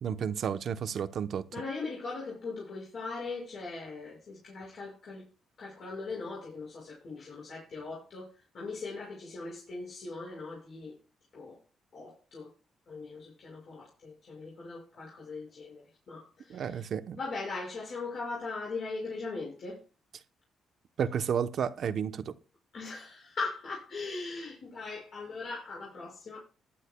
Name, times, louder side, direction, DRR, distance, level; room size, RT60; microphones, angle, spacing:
voice 1, 0.0-1.4 16.5-17.2 21.0-22.3, right 7 dB, 60° right, 0.9 m, -32 dB
voice 2, 1.5-5.2 5.6-10.9 11.3-11.6 11.9-12.5 12.9-16.9 17.2-19.8 22.7-26.4, left 3 dB, 50° left, 6.1 m, -40 dB
20.0 x 11.5 x 2.3 m
cardioid pair, 120°, 0 cm